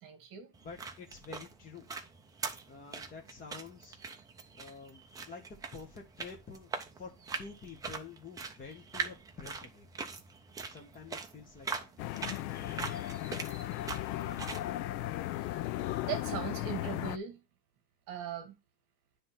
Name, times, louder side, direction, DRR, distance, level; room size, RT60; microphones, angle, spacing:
voice 1, 0.0-0.5 14.2-14.5 15.4-15.6 16.1-17.4 18.1-18.6, right 8 dB, 40° right, 1.5 m, -39 dB
sound 1, 0.5-14.7, right 5 dB, 10° right, 0.4 m, -43 dB
voice 2, 0.6-1.9 2.7-4.0 4.5-9.9 10.7-11.9, left 4 dB, 15° left, 1.0 m, -49 dB
sound 2, 12.0-17.2, left 15 dB, 90° left, 0.7 m, -36 dB
9.6 x 3.5 x 5.8 m
supercardioid pair, 155°, 50 cm